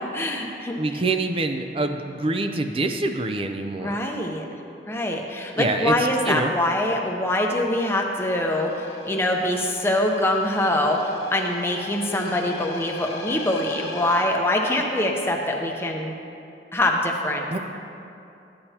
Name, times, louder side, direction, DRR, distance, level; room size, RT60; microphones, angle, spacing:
voice 1, 0.1-1.0 3.8-4.4 4.9-16.1 16.7-17.6, left 1 dB, 15° left, 1 dB, 0.7 m, -24 dB
voice 2, 0.7-4.0 5.6-5.9 6.2-6.5 17.5-17.6, right 2 dB, 30° right, 6 dB, 0.5 m, -25 dB
sound 1, 8.1-14.2, left 3 dB, 65° left, 1.3 m, -40 dB
13.5 x 8.8 x 2.8 m, 2.8 s
head